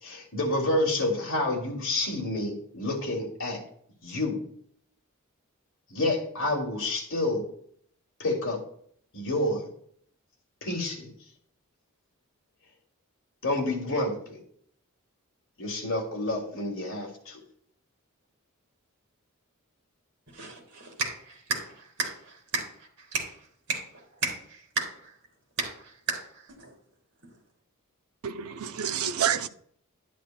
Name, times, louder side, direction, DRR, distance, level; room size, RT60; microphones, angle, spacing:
voice 1, 0.0-3.6 4.0-4.4 5.9-7.4 8.2-8.6 9.1-9.7 10.6-11.1 13.4-14.4 15.6-17.4, left 1 dB, 60° left, 2.5 m, -29 dB
voice 2, 20.3-21.7 22.0-22.7 23.1-23.2 23.7-23.8 24.2-25.1 25.6-25.7 26.1-26.2 26.6-26.7, right 4 dB, 55° right, 3.7 m, -32 dB
voice 3, 28.2-29.5, right 9 dB, 75° right, 0.5 m, -28 dB
11.5 x 10.5 x 2.2 m
head